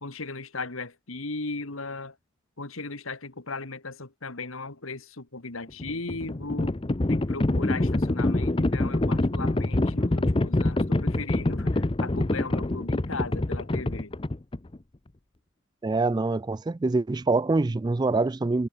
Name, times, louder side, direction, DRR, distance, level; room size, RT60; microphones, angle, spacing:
voice 1, 0.0-2.1 2.6-6.8 7.1-14.1, left 3 dB, 85° left, 2.3 m, -37 dB
Livestock farm animals working animals, 5.7-14.8, left 2 dB, 25° left, 0.7 m, -25 dB
voice 2, 15.8-18.7, right 3 dB, 20° right, 0.3 m, -25 dB
head